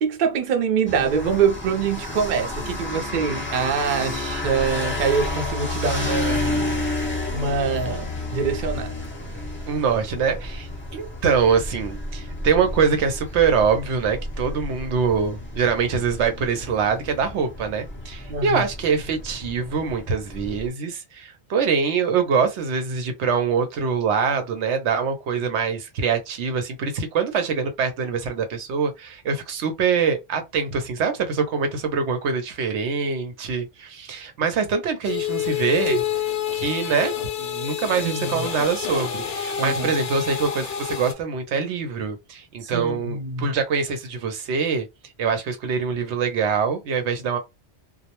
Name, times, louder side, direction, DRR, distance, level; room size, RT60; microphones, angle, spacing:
voice 1, 0.0-6.9 7.3-8.9 18.3-18.6 38.0-38.5 39.6-39.9 42.6-43.5, right 6 dB, 55° right, 0.6 m, -25 dB
sound 1, 0.9-20.7, left 2 dB, 15° left, 0.5 m, -31 dB
voice 2, 5.9-6.7 9.7-36.0 36.5-37.1 37.4-44.9 45.2-47.4, right 6 dB, 80° right, 0.9 m, -24 dB
sound 2, 35.0-41.1, left 9 dB, 60° left, 0.7 m, -28 dB
2.2 x 2.0 x 2.9 m
omnidirectional pair, 1.2 m